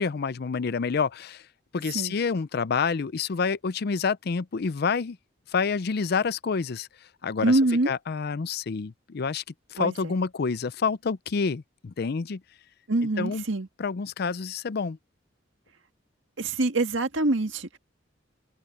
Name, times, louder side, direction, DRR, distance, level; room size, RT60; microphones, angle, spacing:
voice 1, 0.0-1.4 1.7-5.2 5.5-6.9 7.2-7.6 7.9-9.4 9.7-12.4 13.2-13.4 13.8-15.0, left 5 dB, 55° left, 0.5 m, -28 dB
voice 2, 7.4-7.9 9.8-10.1 12.9-13.7 16.4-17.8, right 2 dB, 85° right, 1.8 m, -25 dB
head